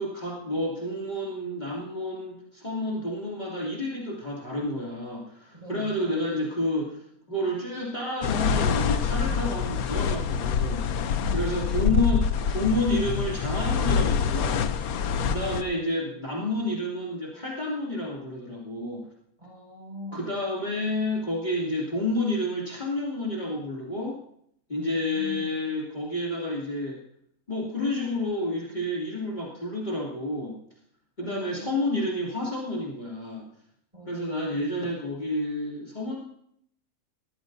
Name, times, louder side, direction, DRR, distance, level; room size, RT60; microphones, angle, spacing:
voice 1, 0.0-10.9 11.3-14.7 15.3-19.1 20.1-24.2 24.7-27.0 27.5-30.6 31.2-33.4 34.1-36.2, left 1 dB, 30° left, -4 dB, 2.9 m, -30 dB
voice 2, 5.5-6.2 10.9-11.8 15.1-15.8 19.4-20.2 24.7-25.5 31.2-32.1 33.9-34.8, right 1 dB, 25° right, -2 dB, 5.6 m, -42 dB
sound 1, 8.2-15.6, left 6 dB, 85° left, 1.2 m, -26 dB
21.0 x 14.0 x 2.7 m, 0.69 s
omnidirectional pair, 1.5 m